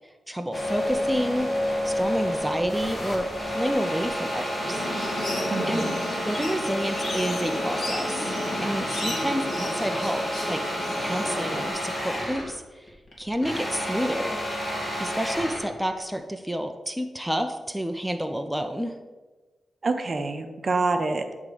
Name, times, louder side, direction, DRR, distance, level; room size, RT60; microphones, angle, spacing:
voice 1, 0.3-1.5 1.8-4.9 5.7-5.9 6.3-10.6 11.0-12.9 13.2-14.4 15.0-19.0, equal, ahead, 5 dB, 0.5 m, -29 dB
sound 1, 0.5-12.5 12.9-15.7, equal, 30° left, 2.2 m, -30 dB
sound 2, 4.6-11.7, left 1 dB, 50° left, 2.1 m, -32 dB
voice 2, 5.5-6.0 19.8-21.3, right 3 dB, 45° right, 7 dB, 0.7 m, -27 dB
9.4 x 3.6 x 5.1 m, 1.2 s
cardioid pair, 80°, 0 cm